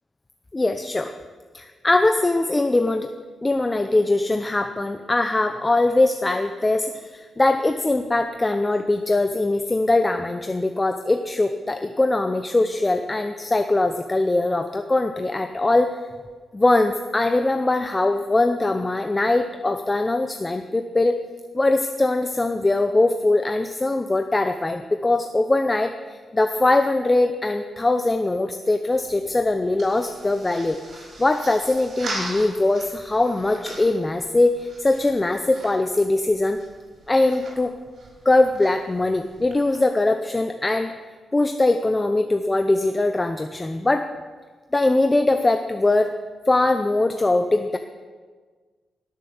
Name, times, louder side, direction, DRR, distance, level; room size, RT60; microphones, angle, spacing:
voice 1, 0.5-1.1 1.5-3.1 3.4-16.0 16.5-21.2 21.5-36.6 37.1-37.7 38.2-40.9 41.3-44.1 44.7-46.1 46.5-47.8, left 2 dB, 20° left, 7 dB, 0.7 m, -21 dB
sound 1, 28.9-39.8, right 2 dB, 60° right, 5.3 m, -40 dB
17.0 x 7.6 x 7.1 m, 1.5 s
cardioid pair, 80°, 0 cm